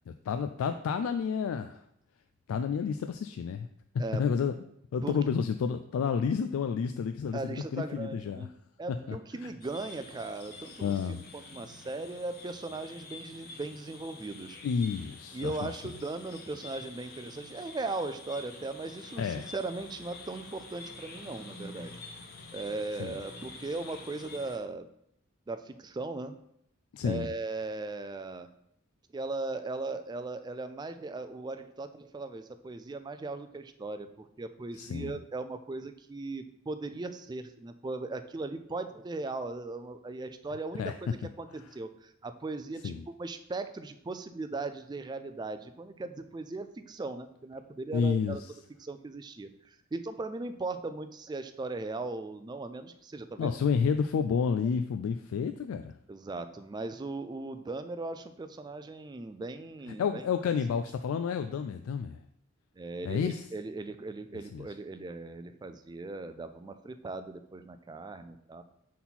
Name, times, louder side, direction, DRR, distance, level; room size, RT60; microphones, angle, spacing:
voice 1, 0.1-1.8 2.5-3.7 4.2-4.5 4.9-8.5 9.1-9.2 9.4-9.5 10.8-11.2 14.6-15.7 19.2-19.5 23.0-23.2 26.9-27.3 34.7-35.1 40.8-40.9 42.8-43.0 47.9-48.4 53.4-55.9 60.0-62.2 63.0-63.4 64.5-64.7, left 6 dB, 85° left, 8 dB, 0.3 m, -30 dB
voice 2, 7.3-8.5 8.8-10.9 11.3-14.6 15.3-22.0 22.5-24.9 25.5-26.4 27.0-28.5 29.1-48.4 48.8-53.5 56.1-60.2 62.8-68.6, right 3 dB, 20° right, 10 dB, 0.3 m, -38 dB
sound 1, 9.6-24.6, left 3 dB, 45° left, 0.8 m, -48 dB
4.2 x 4.2 x 5.6 m, 0.74 s
head